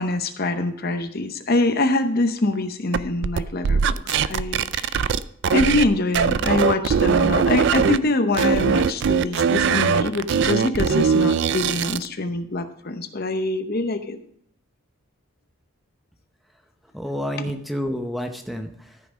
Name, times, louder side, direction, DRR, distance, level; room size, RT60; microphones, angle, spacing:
voice 1, 0.0-5.1 5.5-14.2, left 2 dB, 45° left, 9 dB, 0.7 m, -24 dB
sound 1, 2.9-5.9 6.1-8.0 8.3-12.1, right 6 dB, 55° right, 0.4 m, -20 dB
voice 2, 16.9-19.0, equal, ahead, 5 dB, 0.7 m, -29 dB
13.5 x 5.9 x 5.1 m, 0.68 s
head